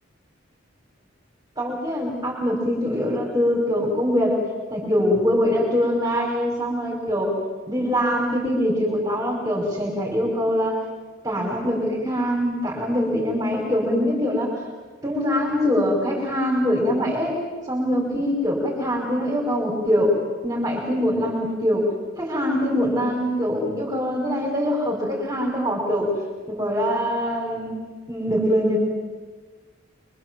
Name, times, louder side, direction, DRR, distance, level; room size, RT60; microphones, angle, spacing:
voice 1, 1.6-4.4 4.7-7.4 7.7-10.8 11.2-14.6 15.0-17.4 17.7-20.1 20.4-21.9 22.2-26.1 26.5-27.7 28.1-28.8, equal, 20° right, -2 dB, 5.3 m, -23 dB
26.0 x 24.5 x 7.7 m, 1.4 s
head